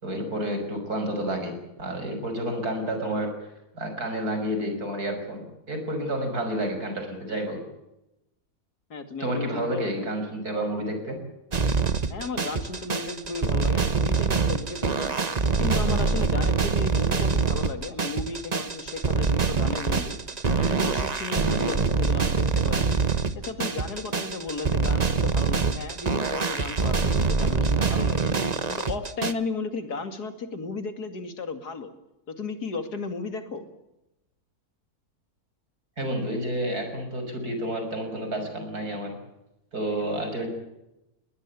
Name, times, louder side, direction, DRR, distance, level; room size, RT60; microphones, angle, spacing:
voice 1, 0.0-3.3 3.7-7.6 9.2-11.2 36.0-39.1 39.7-40.5, right 1 dB, 75° right, 6 dB, 6.7 m, -30 dB
voice 2, 8.9-9.9 12.1-15.1 15.6-20.2 20.6-22.9 23.4-28.3 28.7-31.9 32.3-33.7, left 4 dB, 90° left, 8 dB, 3.0 m, -34 dB
sound 1, 11.5-29.3, right 4 dB, 30° right, 1.1 m, -25 dB
21.5 x 19.5 x 8.4 m, 0.90 s
omnidirectional pair, 1.6 m